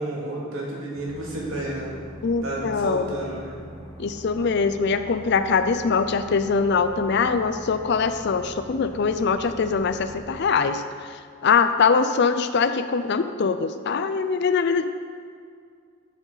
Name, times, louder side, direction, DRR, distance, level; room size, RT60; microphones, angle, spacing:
voice 1, 0.0-2.0 2.4-3.6, right 1 dB, 80° right, -4 dB, 2.4 m, -31 dB
sound 1, 0.9-10.4, equal, 10° left, 1.2 m, -43 dB
voice 2, 2.2-3.1 4.0-10.8 11.1-14.8, left 5 dB, 55° left, 10 dB, 0.4 m, -22 dB
12.0 x 7.2 x 4.0 m, 2.2 s
head